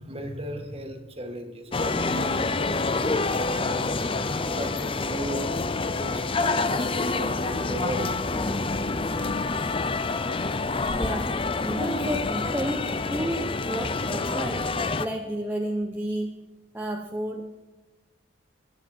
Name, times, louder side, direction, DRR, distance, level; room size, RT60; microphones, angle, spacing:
voice 1, 0.0-3.9 4.5-5.5 6.0-8.6, right 1 dB, 30° right, 4 dB, 1.9 m, -36 dB
sound 1, 1.7-15.1, left 3 dB, 30° left, 0.6 m, -27 dB
voice 2, 10.9-14.7 15.0-16.5 16.7-17.6, right 1 dB, 10° right, -1 dB, 1.0 m, -32 dB
22.5 x 9.8 x 4.6 m, 1.2 s
head